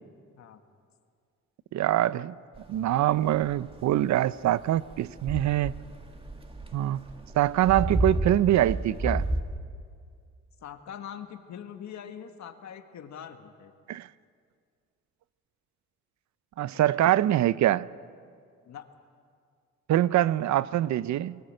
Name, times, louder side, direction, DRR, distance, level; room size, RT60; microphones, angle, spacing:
voice 1, 1.7-2.4 2.7-5.7 6.7-7.0 7.3-9.2 13.9-14.1 16.6-17.9 19.9-21.4, right 13 dB, 65° right, 0.6 m, -24 dB
sound 1, 2.6-9.4, right 1 dB, 20° right, 2.4 m, -32 dB
voice 2, 10.6-13.7 16.6-17.1 18.7-18.9, left 8 dB, 65° left, 1.8 m, -43 dB
23.0 x 19.0 x 7.8 m
cardioid pair, 90°, 30 cm